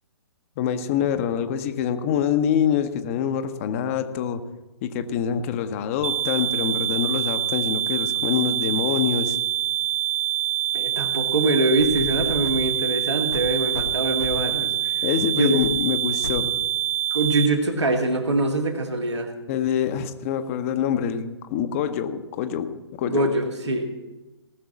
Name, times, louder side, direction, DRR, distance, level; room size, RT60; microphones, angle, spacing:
voice 1, 0.6-4.4 4.8-9.4 15.0-16.6 19.5-22.7 23.0-23.3, left 8 dB, 30° left, 10 dB, 0.9 m, -25 dB
sound 1, 6.0-17.5, right 12 dB, 30° right, 0.4 m, -25 dB
voice 2, 10.7-15.0 15.3-15.7 17.1-19.3 23.0-23.9, right 2 dB, 75° right, 3 dB, 2.1 m, -24 dB
sound 2, 11.8-12.7 13.3-14.6 15.1-15.2 15.6-15.8 16.2-16.5 17.2-17.3, left 4 dB, 70° left, 1.0 m, -34 dB
18.5 x 6.5 x 6.0 m, 1.1 s
figure-of-eight pair, 125°, 15 cm